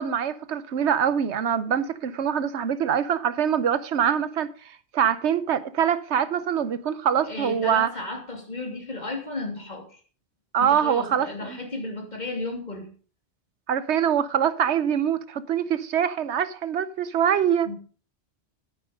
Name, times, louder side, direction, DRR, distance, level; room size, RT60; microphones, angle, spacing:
voice 1, 0.0-7.9 10.5-11.6 13.7-17.7, right 8 dB, 80° right, 1.1 m, -24 dB
voice 2, 7.2-10.0 10.6-12.9 17.6-17.8, left 2 dB, 40° left, 3.1 m, -34 dB
12.5 x 9.4 x 5.2 m
omnidirectional pair, 1.1 m